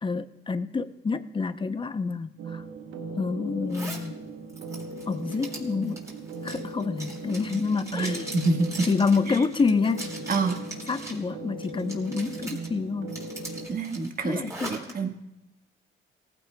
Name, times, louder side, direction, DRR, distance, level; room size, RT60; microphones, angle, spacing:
voice 1, 0.0-2.6 3.2-4.1 5.1-6.1 6.4-8.3 8.8-10.1 10.9-13.2 14.2-14.9, left 4 dB, 25° left, 12 dB, 0.6 m, -28 dB
sound 1, 2.4-13.7, right 3 dB, 75° right, 1.1 m, -39 dB
Zipper (clothing), 3.7-4.1 4.5-11.2 11.6-12.7 13.1-14.9, right 2 dB, 15° right, 3.7 m, -41 dB
voice 2, 7.9-8.9 9.3-9.4 10.3-10.6 13.7-15.1, right 3 dB, 45° right, 4 dB, 1.5 m, -27 dB
18.5 x 15.5 x 2.2 m, 0.91 s
cardioid pair, 90°, 20 cm